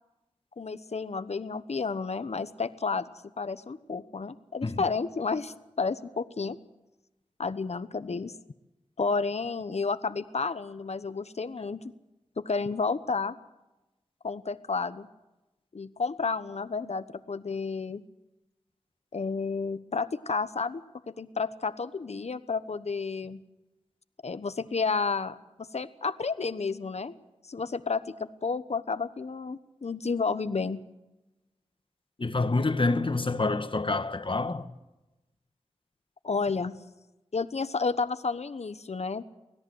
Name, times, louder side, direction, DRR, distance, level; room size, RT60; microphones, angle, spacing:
voice 1, 0.6-3.1 3.4-6.6 7.4-8.3 9.0-11.8 12.4-13.4 14.2-15.1 15.7-18.0 19.1-23.4 24.2-27.1 27.5-30.8 36.2-36.8 37.3-39.2, left 4 dB, 65° left, 1.1 m, -31 dB
voice 2, 32.2-34.7, left 3 dB, 45° left, 1.5 m, -27 dB
25.0 x 17.0 x 7.9 m
wide cardioid pair, 60°, 12 cm